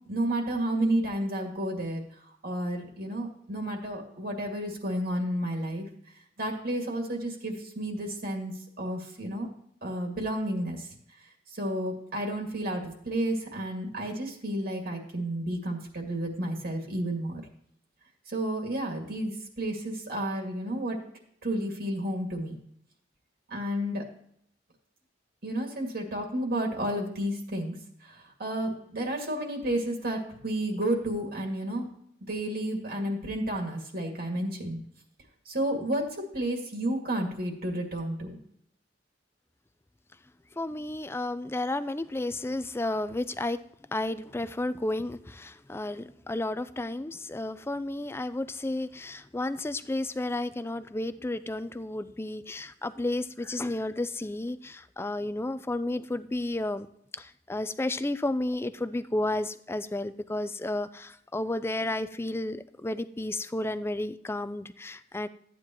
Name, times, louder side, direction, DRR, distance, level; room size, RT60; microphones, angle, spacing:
voice 1, 0.1-2.0 2.4-5.9 6.4-8.5 8.8-9.5 9.8-10.9 11.5-17.4 18.3-21.0 21.4-22.5 23.5-24.0 25.4-27.8 28.0-31.9 32.3-34.8 35.5-38.4, right 1 dB, 55° right, 1 dB, 2.2 m, -31 dB
voice 2, 40.6-43.6 43.9-56.9 57.1-65.3, left 2 dB, 15° left, 13 dB, 0.4 m, -32 dB
13.5 x 9.2 x 3.0 m, 0.70 s
head